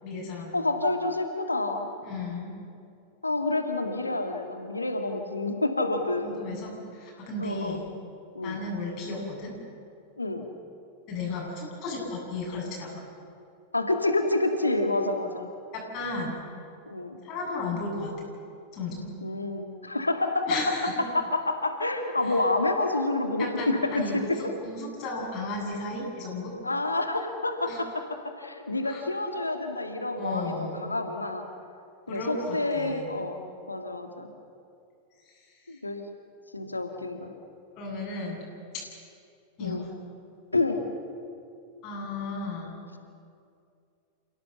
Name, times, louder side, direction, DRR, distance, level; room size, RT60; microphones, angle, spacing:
voice 1, 0.0-0.6 2.0-2.6 6.2-7.8 8.4-9.5 11.1-13.0 15.7-16.4 17.2-18.1 18.7-19.1 20.5-21.1 23.4-26.5 27.7-27.8 28.8-29.1 30.2-30.8 32.1-33.1 35.2-35.3 37.8-38.4 38.7-38.8 39.6-39.9 41.8-42.7, left 2 dB, 40° left, -2 dB, 7.9 m, -34 dB
voice 2, 0.5-1.9 3.2-6.4 7.4-7.8 8.4-8.6 10.2-10.5 13.7-15.5 16.9-17.2 19.2-20.6 21.1-24.4 26.6-31.5 32.1-33.4 33.7-34.3 35.7-36.1 36.5-37.3 39.6-39.8 40.5-40.8, left 2 dB, 80° left, 5 dB, 2.0 m, -28 dB
29.0 x 17.0 x 7.0 m, 2.4 s
figure-of-eight pair, 90°, 0 cm